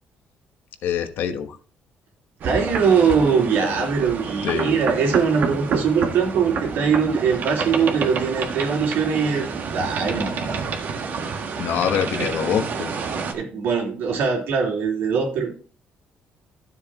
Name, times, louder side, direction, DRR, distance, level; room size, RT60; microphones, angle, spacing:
voice 1, 0.8-1.6 4.4-4.8 11.6-12.9, left 8 dB, 75° left, 7 dB, 1.2 m, -24 dB
sound 1, 2.4-13.3, right 5 dB, 60° right, 1.5 m, -29 dB
voice 2, 2.4-9.5 9.7-10.5 12.2-12.3 13.3-15.5, right 6 dB, 85° right, 0 dB, 3.2 m, -21 dB
12.5 x 7.5 x 3.0 m, 0.39 s
cardioid pair, 110°, 4 cm